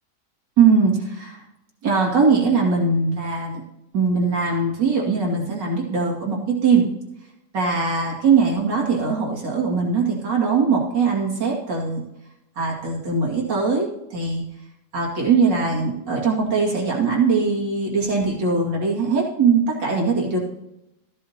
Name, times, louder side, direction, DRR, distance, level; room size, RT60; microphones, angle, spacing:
voice 1, 0.6-1.4 1.8-3.6 3.9-6.8 7.5-12.0 12.6-14.4 14.9-20.4, right 4 dB, 85° right, -2 dB, 3.0 m, -21 dB
14.5 x 10.5 x 2.8 m, 0.88 s
omnidirectional pair, 1.9 m